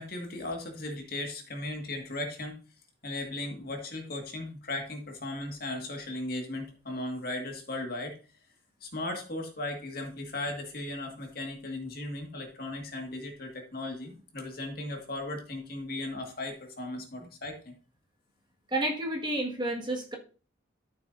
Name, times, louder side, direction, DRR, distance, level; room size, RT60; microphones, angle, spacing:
voice 1, 0.0-2.5 3.0-8.2 8.8-17.7, left 2 dB, 50° left, 2 dB, 2.0 m, -37 dB
voice 2, 18.7-20.2, right 1 dB, 25° right, -1 dB, 1.8 m, -30 dB
13.0 x 6.7 x 2.7 m, 0.37 s
head